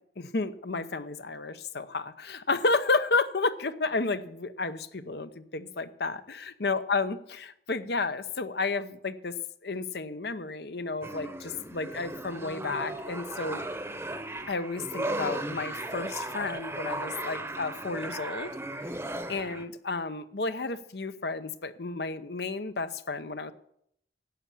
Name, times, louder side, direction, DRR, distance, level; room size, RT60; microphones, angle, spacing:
voice 1, 0.2-9.4 9.6-13.6 14.5-18.5 18.8-18.9 19.3-23.5, left 3 dB, 65° left, 13 dB, 0.8 m, -32 dB
sound 1, 11.0-19.7, right 1 dB, 15° right, 0.9 m, -36 dB
11.5 x 8.5 x 8.3 m, 0.72 s
head